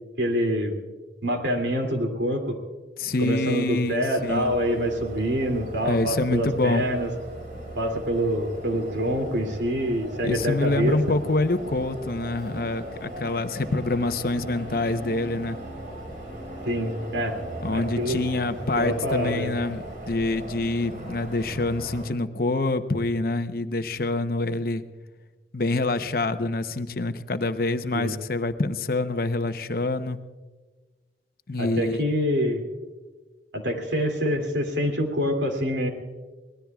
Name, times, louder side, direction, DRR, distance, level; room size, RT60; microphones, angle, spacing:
voice 1, 0.2-0.8 1.2-2.6 3.2-7.1 7.7-11.0 16.7-17.5 17.7-18.2 18.8-19.5 27.9-28.1 31.6-32.6 33.5-35.9, equal, 85° right, 3 dB, 2.7 m, -26 dB
voice 2, 3.0-4.5 5.8-6.8 10.2-15.6 17.6-24.8 25.5-30.2 31.5-32.0, left 2 dB, 55° left, 9 dB, 0.8 m, -26 dB
sound 1, 4.1-22.1, right 1 dB, 50° right, 6.0 m, -38 dB
24.0 x 19.0 x 2.4 m, 1.3 s
head